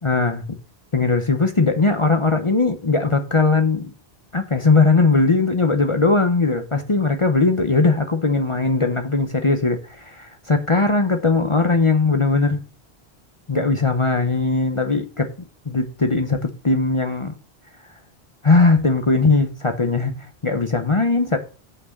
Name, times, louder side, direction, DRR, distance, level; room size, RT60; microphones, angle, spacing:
voice 1, 0.0-0.5 0.9-3.9 4.3-12.6 13.5-15.3 15.7-17.3 18.4-20.1 20.4-21.4, left 3 dB, 30° left, 0.8 m, -19 dB
6.0 x 5.6 x 7.1 m
omnidirectional pair, 1.1 m